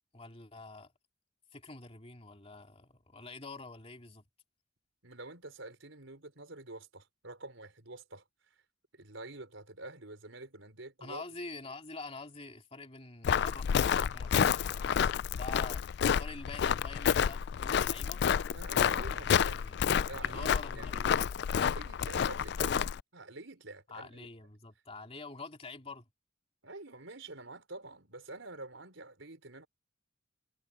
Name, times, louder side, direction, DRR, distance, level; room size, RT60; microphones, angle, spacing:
voice 1, 0.1-0.9 1.5-4.2 11.0-15.0 15.3-18.2 19.1-19.8 20.2-21.3 23.9-26.0, left 3 dB, 30° left, 2.8 m, -46 dB
voice 2, 5.0-8.2 8.9-11.2 18.5-19.6 20.1-20.9 21.5-22.8 23.1-24.3 26.6-29.7, right 2 dB, 75° right, 4.5 m, -47 dB
Walk footsteps, 13.2-23.0, left 7 dB, 55° left, 0.3 m, -29 dB
head